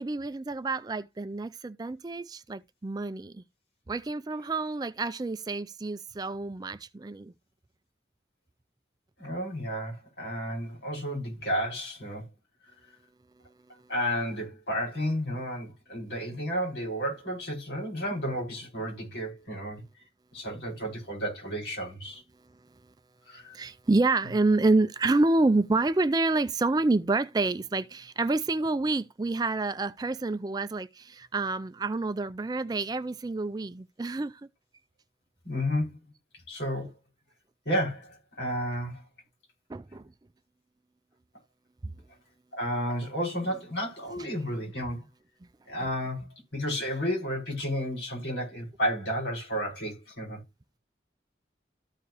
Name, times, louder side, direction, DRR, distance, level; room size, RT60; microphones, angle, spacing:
voice 1, 0.0-3.4 3.9-7.3 23.5-34.4 39.7-40.1 41.8-41.9 44.2-44.3, right 2 dB, 20° right, 0.4 m, -28 dB
voice 2, 9.2-12.3 13.9-19.8 20.3-22.2 23.3-23.6 35.4-35.9 36.5-36.9 37.7-39.0 42.5-45.0 45.7-50.4, equal, 80° left, 5.4 m, -32 dB
14.0 x 4.9 x 3.0 m
head